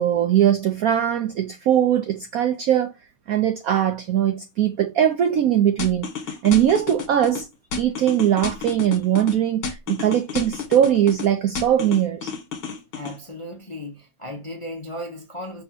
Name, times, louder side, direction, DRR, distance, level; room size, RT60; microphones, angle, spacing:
voice 1, 0.0-2.9 3.3-6.1 6.4-7.5 7.8-12.3, right 10 dB, 75° right, 0.8 m, -20 dB
sound 1, 5.8-7.4 7.7-9.3 9.6-11.3 11.6-13.1, left 5 dB, 65° left, 1.9 m, -30 dB
voice 2, 12.9-15.6, left 1 dB, 30° left, 0.5 m, -35 dB
5.6 x 3.4 x 2.7 m
omnidirectional pair, 2.1 m